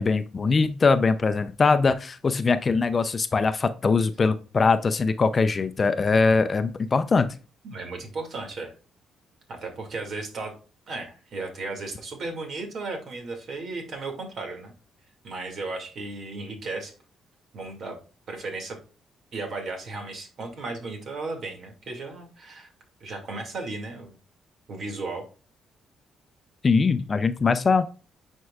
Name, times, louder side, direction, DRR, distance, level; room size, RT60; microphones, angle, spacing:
voice 1, 0.0-7.3 26.6-27.9, left 4 dB, 35° left, 11 dB, 0.5 m, -22 dB
voice 2, 7.6-8.8 9.5-10.5 10.9-14.7 15.2-16.9 17.5-18.0 18.3-18.8 19.3-22.7 23.0-24.2 24.7-25.2, right 3 dB, 60° right, 3 dB, 2.3 m, -35 dB
9.4 x 4.5 x 2.4 m, 0.35 s
cardioid pair, 90°, 0 cm